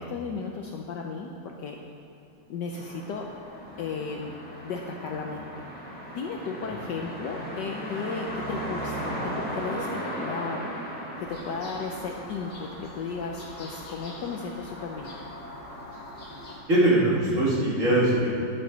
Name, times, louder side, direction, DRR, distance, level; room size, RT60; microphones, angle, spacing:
voice 1, 0.0-1.8 2.5-3.3 3.8-4.3 4.6-5.5 6.1-15.2, left 5 dB, 70° left, 1 dB, 1.1 m, -35 dB
sound 1, 2.7-13.0, right 1 dB, 5° left, 1.7 m, -36 dB
sound 2, 11.2-16.6, left 1 dB, 50° left, 2.1 m, -43 dB
voice 2, 16.7-18.3, right 1 dB, 35° right, -7 dB, 2.5 m, -21 dB
11.0 x 10.5 x 3.9 m, 3.0 s
omnidirectional pair, 2.3 m